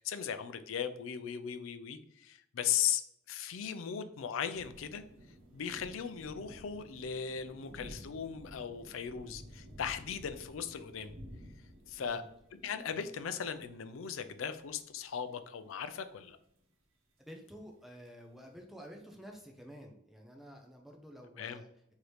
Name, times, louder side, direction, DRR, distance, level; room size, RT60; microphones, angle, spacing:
voice 1, 0.0-3.0 3.3-5.0 5.5-11.2 11.9-12.2 12.5-16.4 21.4-21.6, left 8 dB, 85° left, 10 dB, 0.4 m, -37 dB
sound 1, 4.5-15.1 15.6-16.6 18.0-18.1, equal, 85° right, 0.9 m, -52 dB
voice 2, 12.0-12.3 17.3-21.7, equal, ahead, 1 dB, 0.4 m, -51 dB
4.8 x 2.8 x 3.1 m, 0.73 s
head